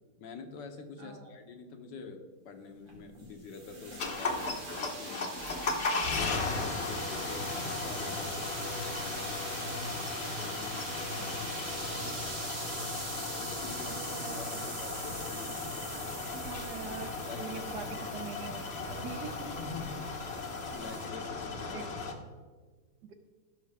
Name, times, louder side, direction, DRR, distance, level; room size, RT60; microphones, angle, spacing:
voice 1, 0.2-5.4 6.1-9.4 10.3-10.8 13.3-16.1 17.2-17.7 18.0-18.3 19.6-20.3 20.7-22.2, left 4 dB, 75° left, 5 dB, 1.5 m, -46 dB
voice 2, 1.0-1.3 11.2-11.5 13.8-14.6 16.3-17.9 18.1-19.5 21.7-21.8 23.0-23.1, right 6 dB, 65° right, 7 dB, 1.2 m, -44 dB
sound 1, 2.9-21.1, right 2 dB, 90° right, 3.3 m, -43 dB
sound 2, 4.0-22.1, left 3 dB, 45° left, 0.9 m, -36 dB
15.5 x 5.7 x 3.5 m, 1.4 s
omnidirectional pair, 2.0 m